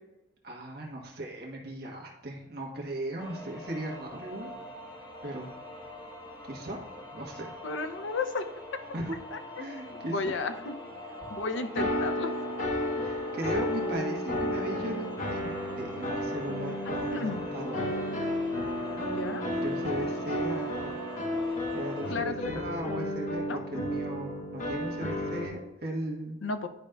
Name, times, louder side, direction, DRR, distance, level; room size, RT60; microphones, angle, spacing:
voice 1, 0.4-4.5 5.2-5.6 6.5-6.8 7.1-7.5 8.9-9.2 9.6-10.3 13.0-17.9 19.6-21.0 21.4-26.4, right 1 dB, 55° right, -1 dB, 1.3 m, -37 dB
sound 1, 3.2-22.1, left 1 dB, 20° left, 1.0 m, -43 dB
voice 2, 7.6-8.4 9.3-9.4 10.1-10.7 11.3-12.3 17.1-17.5 19.0-19.4 22.1-22.5 23.5-23.6 26.4-26.7, left 3 dB, 80° left, 8 dB, 0.6 m, -33 dB
sound 2, 11.7-25.5, equal, 40° left, 0.9 m, -32 dB
10.5 x 5.0 x 2.3 m, 1.0 s
head